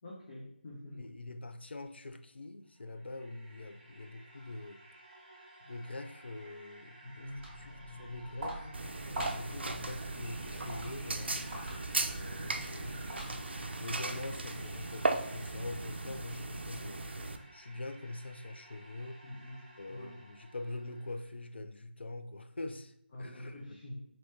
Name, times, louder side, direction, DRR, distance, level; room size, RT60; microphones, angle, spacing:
voice 1, 0.0-1.0 7.0-7.5 19.2-19.6 19.9-20.2 23.1-24.0, left 1 dB, 40° left, 0.8 m, -46 dB
voice 2, 0.9-4.8 5.6-7.3 7.6-8.7 9.1-11.4 11.9-13.1 13.8-17.0 17.5-19.2 19.8-23.6, left 2 dB, 75° left, 0.4 m, -44 dB
sound 1, 2.7-21.3, right 1 dB, 30° right, 0.8 m, -55 dB
Walk footsteps, 7.1-13.7, right 1 dB, 10° right, 1.1 m, -44 dB
sound 2, 8.7-17.4, right 2 dB, 70° right, 0.4 m, -37 dB
4.1 x 2.9 x 3.1 m
figure-of-eight pair, 160°, 6 cm